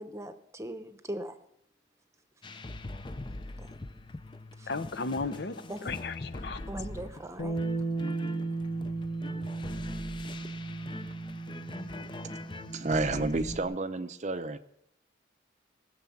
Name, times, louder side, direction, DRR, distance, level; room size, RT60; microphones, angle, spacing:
voice 1, 0.0-1.4 3.6-3.7 4.6-4.7 5.7-5.8 6.7-7.6, right 1 dB, 15° right, 9 dB, 0.8 m, -40 dB
sound 1, 2.4-13.6, left 2 dB, 25° left, 0.5 m, -42 dB
voice 2, 4.7-5.5 5.9-6.1 6.4-6.6, left 3 dB, 60° left, 12 dB, 0.7 m, -33 dB
Bass guitar, 7.4-13.6, right 3 dB, 85° left, 2.6 m, -36 dB
voice 3, 12.7-14.6, right 3 dB, 35° right, 11 dB, 0.6 m, -30 dB
19.0 x 6.7 x 7.1 m, 0.77 s
head